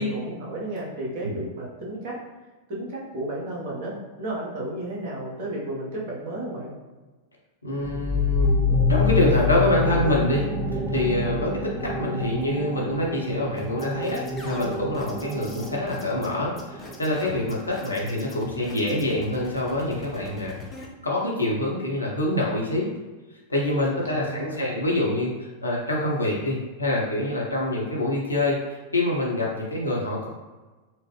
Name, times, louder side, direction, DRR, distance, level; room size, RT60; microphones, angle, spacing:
voice 1, 0.0-2.2 2.7-6.7 24.1-24.8, right 1 dB, 50° right, -4 dB, 1.2 m, -33 dB
voice 2, 7.6-10.5 10.9-20.5 21.0-22.9 23.5-30.3, left 1 dB, 80° left, -3 dB, 0.9 m, -26 dB
sound 1, 7.8-17.2, left 3 dB, 20° right, 0.5 m, -27 dB
sound 2, 13.6-20.9, left 3 dB, 20° left, 0.7 m, -43 dB
4.4 x 2.0 x 3.2 m, 1.2 s
figure-of-eight pair, 90°, 0 cm